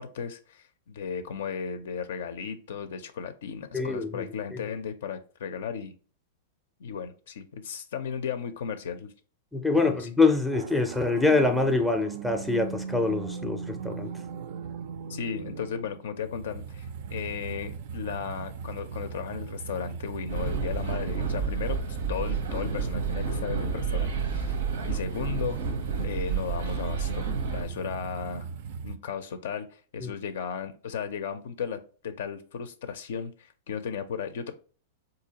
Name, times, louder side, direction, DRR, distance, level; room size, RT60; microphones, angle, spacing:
voice 1, 0.0-5.9 6.8-9.1 9.7-10.1 15.1-25.6 26.0-28.5 28.8-34.5, left 7 dB, 75° left, 0.4 m, -35 dB
voice 2, 3.7-4.2 4.5-4.6 9.5-14.1 30.0-30.1, left 3 dB, ahead, 0.4 m, -25 dB
sound 1, 10.5-29.0, right 6 dB, 60° right, 0.4 m, -38 dB
sound 2, 20.3-27.6, right 5 dB, 85° right, 0.8 m, -30 dB
3.7 x 2.7 x 2.8 m
hypercardioid pair, 135°, 0 cm